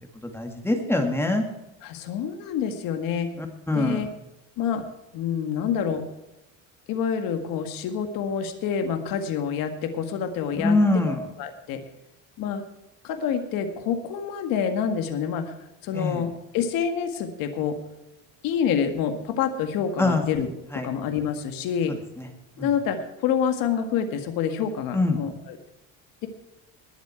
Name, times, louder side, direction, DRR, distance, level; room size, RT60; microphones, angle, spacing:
voice 1, 0.3-1.4 3.7-4.0 10.6-11.2 15.9-16.2 20.0-20.2 20.7-20.9 24.9-25.2, left 2 dB, 5° left, 4 dB, 2.0 m, -22 dB
voice 2, 1.8-3.3 3.7-4.1 4.6-4.8 5.1-6.0 6.9-10.8 11.1-11.8 12.4-12.6 13.0-15.5 15.8-17.8 18.4-20.5 20.8-21.9 22.6-25.6, left 7 dB, 70° left, 6 dB, 1.9 m, -27 dB
20.0 x 7.6 x 4.6 m, 0.92 s
cardioid pair, 140°, 36 cm